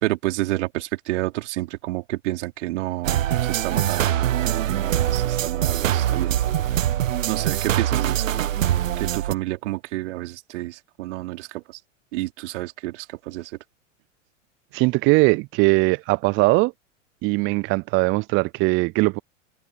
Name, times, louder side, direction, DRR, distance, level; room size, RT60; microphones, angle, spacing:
voice 1, 0.0-6.3 7.3-8.3 9.0-11.6 12.1-13.5, right 17 dB, 65° right, 4.9 m, -29 dB
sound 1, 3.0-9.3, right 11 dB, 85° right, 0.7 m, -23 dB
voice 2, 14.7-16.7 17.2-19.2, right 24 dB, 35° right, 0.4 m, -20 dB
hypercardioid pair, 100°, 38 cm